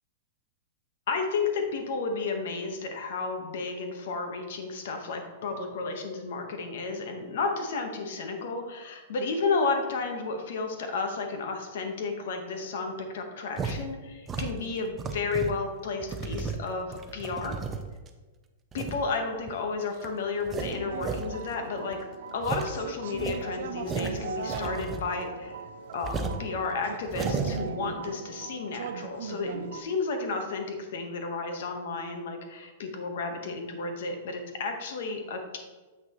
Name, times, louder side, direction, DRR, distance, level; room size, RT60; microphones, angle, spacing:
voice 1, 1.1-17.6 18.7-22.0 22.3-25.6 25.9-35.6, left 4 dB, 60° left, 4 dB, 1.2 m, -32 dB
sound 1, 13.6-13.8 14.3-15.6 16.0-18.1 18.7-19.0 19.5-19.6 20.0-20.1 20.4-21.3 21.5-21.6 21.9-22.0 22.4-22.7 23.1-25.2 25.5-25.6 26.0-26.4 27.0-27.6, right 4 dB, 15° right, 0.5 m, -34 dB
sound 2, 20.5-29.8, right 5 dB, 70° right, 0.7 m, -38 dB
7.9 x 6.0 x 3.0 m, 1.3 s
supercardioid pair, 165°, 0 cm